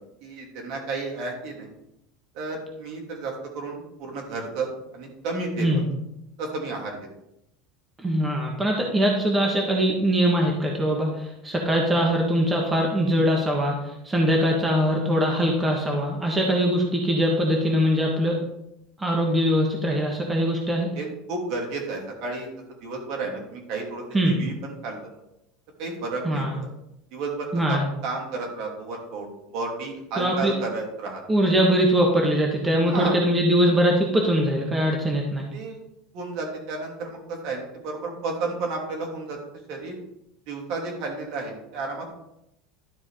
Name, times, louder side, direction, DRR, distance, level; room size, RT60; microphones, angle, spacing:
voice 1, 0.2-1.7 2.3-4.7 4.9-5.8 6.4-7.0 20.9-22.5 22.8-25.1 25.8-26.7 27.1-29.3 29.5-31.2 32.8-33.1 35.5-35.8 36.1-39.4 39.7-39.9 40.5-42.1, right 3 dB, 55° right, 1 dB, 2.9 m, -32 dB
voice 2, 8.0-18.4 19.0-20.9 24.1-24.4 26.2-26.5 27.5-27.8 30.2-30.5 31.3-35.4, equal, 15° right, 0 dB, 1.4 m, -22 dB
12.0 x 4.9 x 5.0 m, 0.83 s
supercardioid pair, 150°, 0 cm